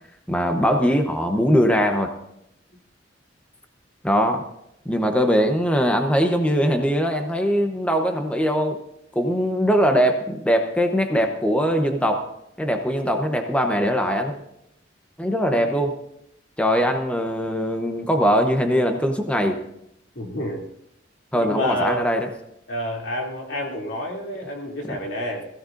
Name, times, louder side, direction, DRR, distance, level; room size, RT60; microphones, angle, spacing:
voice 1, 0.3-2.1 4.0-4.4 4.9-8.8 9.1-12.3 12.6-14.4 15.2-15.9 16.6-19.6 21.3-22.3 24.9-25.0, equal, 5° left, 5 dB, 0.8 m, -21 dB
voice 2, 20.1-20.6 21.3-22.1 22.7-25.5, left 1 dB, 75° left, -1 dB, 2.8 m, -29 dB
21.0 x 15.5 x 2.6 m, 0.80 s
head